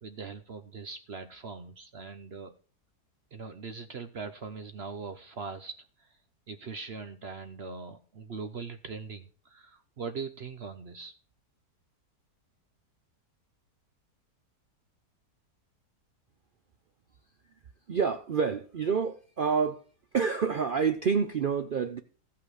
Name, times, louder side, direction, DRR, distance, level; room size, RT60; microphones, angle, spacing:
voice 1, 0.0-2.5 3.3-6.2 6.5-11.1, right 5 dB, 50° right, 9 dB, 0.8 m, -41 dB
voice 2, 17.9-19.8 20.1-22.0, right 6 dB, 75° right, 9 dB, 0.4 m, -28 dB
14.5 x 5.7 x 6.4 m, 0.39 s
omnidirectional pair, 1.7 m